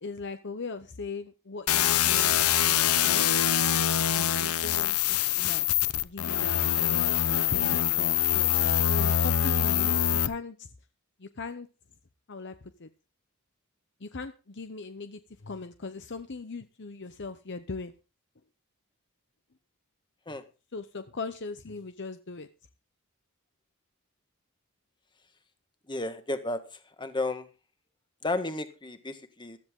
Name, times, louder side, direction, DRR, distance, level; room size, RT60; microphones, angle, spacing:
voice 1, 0.0-2.8 3.0-3.2 4.1-5.6 6.0-8.5 8.9-10.7 11.2-11.7 12.3-12.9 14.0-17.9 20.3-20.4 20.7-22.5, left 4 dB, 55° left, 10 dB, 0.8 m, -39 dB
sound 1, 1.7-10.3, left 10 dB, 85° left, 0.9 m, -24 dB
voice 2, 25.9-26.6 27.0-27.5 28.2-29.6, left 2 dB, 20° left, 9 dB, 1.5 m, -32 dB
15.5 x 13.5 x 3.8 m, 0.32 s
head